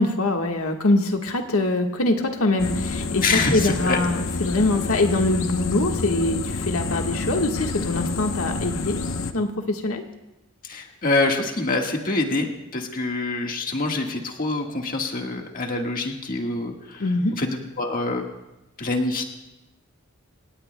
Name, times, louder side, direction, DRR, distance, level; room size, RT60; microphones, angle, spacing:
voice 1, 0.0-9.0 9.3-10.0 17.0-17.4, left 2 dB, 90° left, 3 dB, 1.4 m, -23 dB
sound 1, 2.6-9.3, left 3 dB, 65° left, 0.9 m, -28 dB
voice 2, 3.2-4.0 10.6-17.0 17.4-18.3 18.8-19.2, left 3 dB, 40° left, 2 dB, 1.5 m, -25 dB
28.0 x 17.5 x 2.2 m, 0.98 s
head